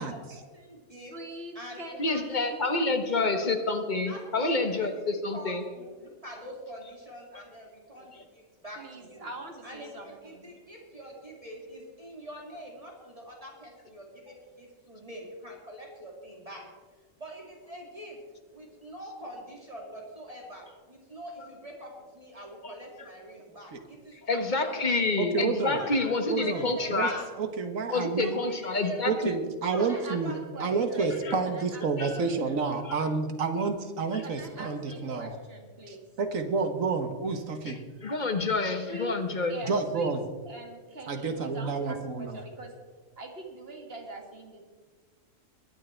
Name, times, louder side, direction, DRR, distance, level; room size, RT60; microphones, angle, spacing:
voice 1, 0.0-1.1 1.5-3.6 4.1-4.9 5.3-9.3 9.6-16.6 17.2-18.2 18.5-25.1 25.6-27.3 27.9-29.3 29.7-30.6 30.9-31.4, right 1 dB, 25° right, -1 dB, 2.6 m, -45 dB
voice 2, 1.1-2.7 8.8-10.5 29.8-31.0 31.5-31.8 32.2-32.6 34.2-36.0 38.9-39.1 39.5-40.1 40.4-42.7 43.2-44.6, right 1 dB, 45° right, 2 dB, 2.2 m, -43 dB
voice 3, 2.0-5.6 7.3-7.4 22.6-22.7 24.3-27.1 27.9-29.1 31.2-31.3 32.0-32.1 32.8-33.0 34.1-34.2 37.6-39.6, left 3 dB, 35° left, 6 dB, 1.4 m, -28 dB
voice 4, 25.2-25.8 26.3-27.1 27.4-28.4 29.1-35.4 35.9-37.8 39.6-40.2 41.1-42.4, right 4 dB, 75° right, 7 dB, 1.7 m, -29 dB
21.5 x 9.4 x 4.5 m, 1.5 s
omnidirectional pair, 1.4 m